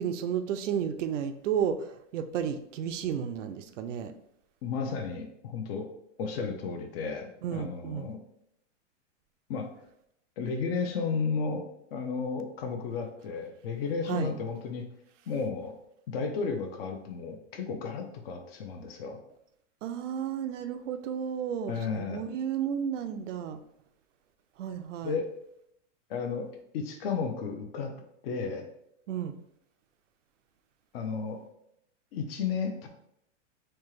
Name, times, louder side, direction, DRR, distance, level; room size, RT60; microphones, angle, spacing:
voice 1, 0.0-4.1 7.4-8.1 14.1-14.3 19.8-23.6 24.6-25.2 29.1-29.4, right 8 dB, 80° right, 9 dB, 0.5 m, -32 dB
voice 2, 4.6-5.9 6.2-8.2 9.5-9.8 10.4-11.7 11.9-14.9 15.3-15.7 16.1-19.2 21.7-22.3 25.0-25.3 26.1-26.5 26.7-27.9 28.2-28.7 30.9-31.4 32.1-32.9, left 5 dB, 55° left, 5 dB, 0.7 m, -33 dB
4.3 x 2.4 x 3.1 m, 0.75 s
supercardioid pair, 145°, 37 cm